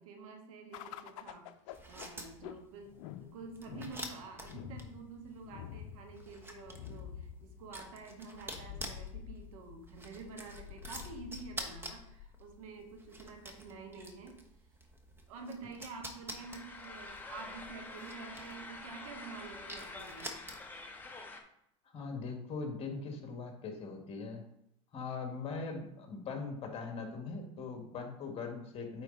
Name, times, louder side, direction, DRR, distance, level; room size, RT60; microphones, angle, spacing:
voice 1, 0.0-1.5 1.9-2.9 3.2-14.4 15.3-20.4, right 4 dB, 75° right, 3 dB, 1.6 m, -48 dB
sound 1, 0.7-13.3, left 10 dB, 65° left, 0.6 m, -49 dB
sound 2, 1.7-20.9, right 1 dB, 15° right, 1.2 m, -49 dB
sound 3, 16.4-21.4, left 3 dB, 10° left, 1.1 m, -47 dB
voice 2, 21.9-24.4 24.9-29.0, left 4 dB, 35° left, 3 dB, 1.9 m, -41 dB
8.8 x 4.4 x 4.0 m, 0.78 s
hypercardioid pair, 100°, 18 cm